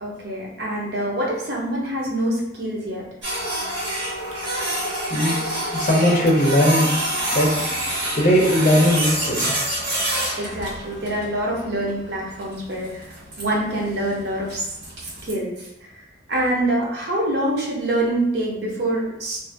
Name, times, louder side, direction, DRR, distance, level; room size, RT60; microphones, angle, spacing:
voice 1, 0.0-3.0 10.4-14.7 15.0-19.4, right 1 dB, 60° right, -2 dB, 0.7 m, -25 dB
Printer, 3.2-15.3, right 1 dB, 90° right, 1.3 m, -27 dB
voice 2, 5.7-6.9 7.3-7.6 8.2-9.5, equal, 40° left, -2 dB, 0.6 m, -18 dB
2.5 x 2.4 x 2.5 m, 0.90 s
head